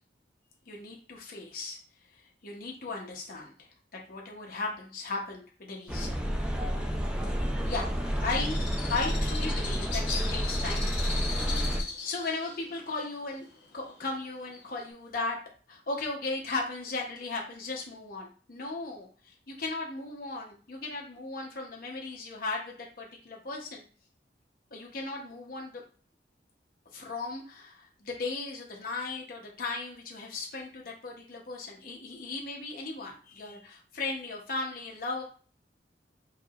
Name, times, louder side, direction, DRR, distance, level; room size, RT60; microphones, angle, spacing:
voice 1, 0.7-1.8 2.4-6.1 7.6-7.9 8.2-10.9 12.0-15.4 15.7-23.8 24.7-25.8 26.9-35.2, left 3 dB, 55° left, -2 dB, 1.0 m, -36 dB
sound 1, 5.9-11.8, equal, 5° right, 0.5 m, -30 dB
Bird, 7.7-14.9, left 4 dB, 80° left, 1.3 m, -39 dB
4.6 x 2.8 x 2.5 m, 0.39 s
head